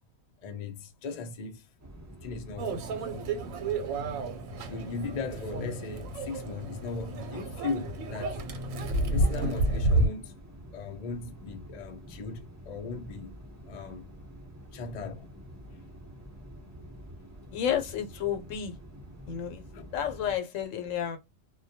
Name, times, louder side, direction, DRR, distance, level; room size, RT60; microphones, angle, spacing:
voice 1, 0.4-1.7 2.2-3.0 3.4-3.6 4.6-8.4 9.1-10.3 10.7-13.4 13.7-14.1 14.7-15.3 19.7-19.8, left 4 dB, 55° left, 0.4 m, -38 dB
sound 1, 1.8-20.4, equal, 20° right, 0.5 m, -48 dB
Microwave oven, 2.6-10.1, right 2 dB, 85° right, 1.0 m, -30 dB
voice 2, 17.5-18.8 19.3-19.6 19.9-21.2, left 9 dB, 80° left, 1.0 m, -31 dB
2.2 x 2.2 x 2.7 m
omnidirectional pair, 1.4 m